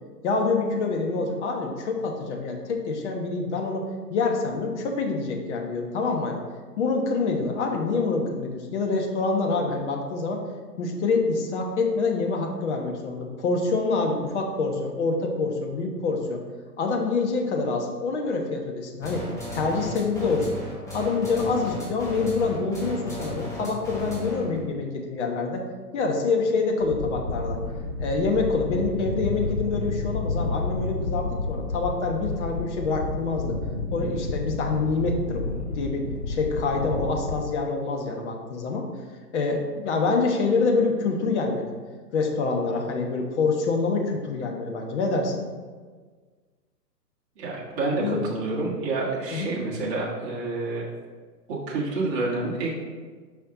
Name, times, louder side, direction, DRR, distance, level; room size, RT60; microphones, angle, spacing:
voice 1, 0.2-6.4 6.8-10.4 10.8-16.4 16.8-20.5 20.9-25.6 25.9-27.6 28.0-33.6 33.9-38.9 39.3-41.7 42.1-45.5 48.0-48.2 49.3-49.5, left 4 dB, 45° left, 1 dB, 1.2 m, -26 dB
sound 1, 19.0-24.6, equal, 5° left, 1.3 m, -35 dB
sound 2, 26.8-37.4, left 3 dB, 30° left, 0.3 m, -30 dB
voice 2, 47.4-50.8 51.5-52.7, right 3 dB, 35° right, -4 dB, 1.5 m, -28 dB
5.9 x 5.5 x 3.9 m, 1.5 s
figure-of-eight pair, 125°, 49 cm